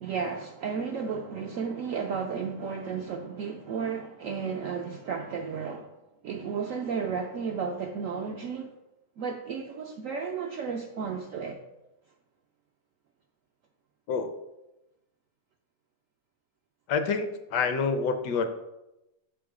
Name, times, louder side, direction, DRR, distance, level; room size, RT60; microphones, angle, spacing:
voice 1, 0.0-5.9 6.2-8.7 9.2-11.6, right 6 dB, 75° right, 0.7 m, -33 dB
voice 2, 16.9-18.5, left 5 dB, 75° left, 1.2 m, -27 dB
6.9 x 3.8 x 4.8 m
omnidirectional pair, 1.9 m